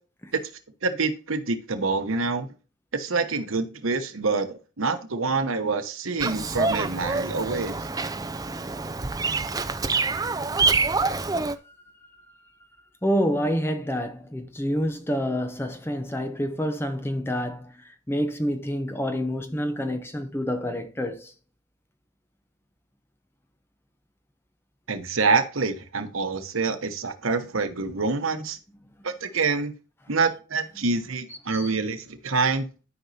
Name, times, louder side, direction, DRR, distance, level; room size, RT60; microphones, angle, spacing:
voice 1, 0.8-2.5 2.9-7.8 24.9-28.6 29.0-29.7 30.1-32.7, right 4 dB, 85° right, 1.1 m, -26 dB
Bird vocalization bird call bird song, 6.2-11.6, right 3 dB, 15° right, 0.4 m, -26 dB
voice 2, 13.0-21.3 31.5-31.8, equal, 10° left, 0.7 m, -28 dB
12.5 x 5.3 x 2.8 m
head